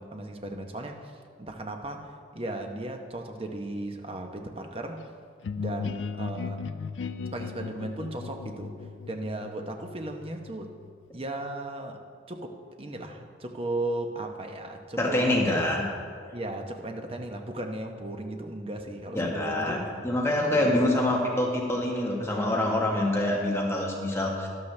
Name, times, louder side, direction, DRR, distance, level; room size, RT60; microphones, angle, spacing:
voice 1, 0.0-5.0 5.6-6.6 7.3-10.7 11.1-12.0 12.3-15.6 16.3-20.8, right 1 dB, 30° right, 4 dB, 0.9 m, -36 dB
sound 1, 5.4-11.1, left 5 dB, 85° left, 0.4 m, -37 dB
voice 2, 15.0-15.8 16.3-16.4 19.1-24.5, left 1 dB, 15° left, -2 dB, 1.4 m, -26 dB
13.0 x 11.5 x 3.3 m, 2.1 s
head